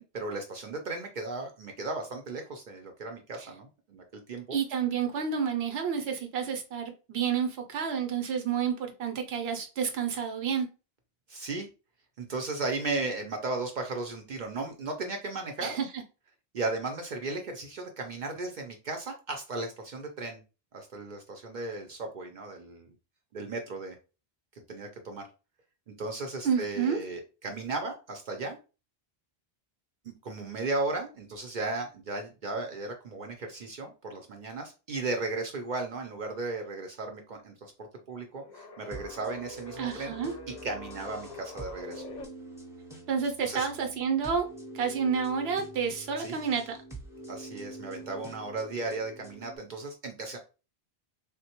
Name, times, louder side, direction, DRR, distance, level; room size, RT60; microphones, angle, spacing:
voice 1, 0.0-4.6 11.3-11.7 12.2-15.7 16.5-20.4 20.7-22.9 23.3-23.9 24.7-25.2 25.9-28.6 30.0-37.7 38.1-40.2 40.5-42.0 43.4-43.7 46.2-46.4 47.3-50.4, right 3 dB, 60° right, 4 dB, 0.6 m, -35 dB
voice 2, 4.5-10.7 15.6-15.9 26.4-27.0 39.8-40.3 43.1-44.5 44.7-46.8, right 7 dB, 85° right, 5 dB, 0.8 m, -30 dB
sound 1, 38.4-42.3, left 4 dB, 50° left, 0.6 m, -46 dB
sound 2, 38.9-49.6, right 1 dB, 5° right, 0.6 m, -45 dB
3.5 x 2.1 x 2.8 m, 0.32 s
omnidirectional pair, 1.0 m